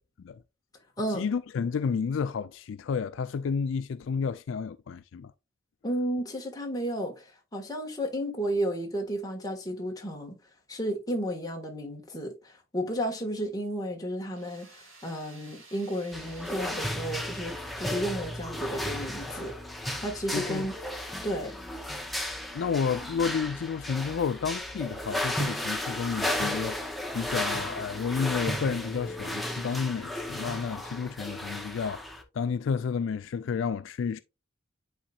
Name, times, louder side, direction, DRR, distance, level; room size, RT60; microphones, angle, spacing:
voice 1, 1.1-5.3 20.3-20.7 22.5-34.2, left 6 dB, 70° left, 0.3 m, -31 dB
voice 2, 5.8-10.4 10.7-19.6 20.0-20.7 21.2-21.6, equal, 20° left, 1.4 m, -33 dB
sound 1, 14.3-18.4, right 3 dB, 85° right, 2.5 m, -53 dB
sound 2, 16.1-32.2, left 1 dB, ahead, 0.6 m, -34 dB
10.0 x 4.1 x 2.3 m
head